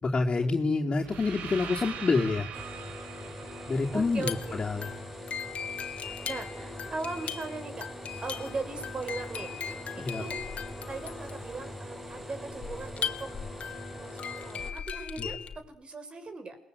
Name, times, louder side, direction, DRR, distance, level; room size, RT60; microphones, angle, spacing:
voice 1, 0.0-2.5 3.7-4.9 10.0-10.2 15.2-15.3, left 3 dB, 40° left, -2 dB, 3.4 m, -27 dB
sound 1, 1.0-5.0, right 7 dB, 75° right, 3.6 m, -42 dB
sound 2, 2.5-14.7, equal, 10° right, 5.5 m, -42 dB
voice 2, 3.9-4.7 6.0-7.9 8.2-9.5 9.9-10.4 10.9-13.3 13.9-16.6, right 3 dB, 45° right, 9 dB, 6.2 m, -39 dB
sound 3, 4.1-15.6, left 8 dB, 60° left, 2.5 m, -39 dB
28.5 x 21.5 x 8.2 m, 0.77 s
hypercardioid pair, 50°, 2 cm